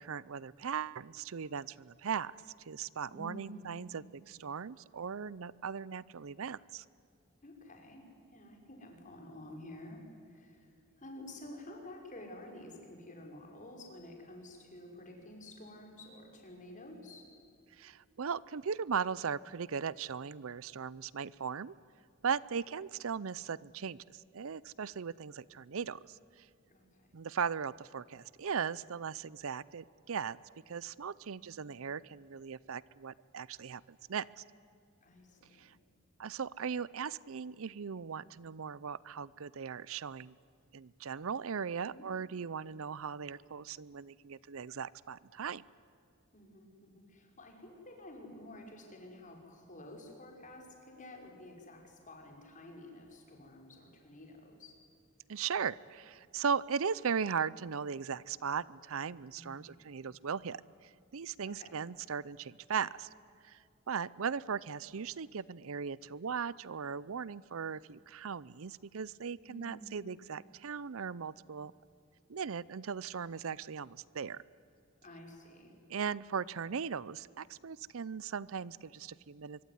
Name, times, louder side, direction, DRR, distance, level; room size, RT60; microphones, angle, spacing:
voice 1, 0.0-2.3 2.7-6.8 17.8-21.7 22.2-26.5 27.1-30.4 30.7-34.3 35.6-35.7 36.2-40.3 40.7-45.6 55.3-63.1 63.4-63.6 63.9-71.7 72.3-74.4 75.9-79.6, right 6 dB, 65° right, 21 dB, 0.6 m, -38 dB
voice 2, 3.1-3.7 7.4-8.0 8.3-17.3 26.7-27.1 31.2-31.8 35.0-35.7 41.8-42.0 46.3-54.7 59.3-59.8 61.5-61.8 69.5-70.0 75.0-75.8, left 1 dB, 35° left, 2 dB, 5.8 m, -51 dB
25.0 x 23.0 x 9.8 m, 2.5 s
head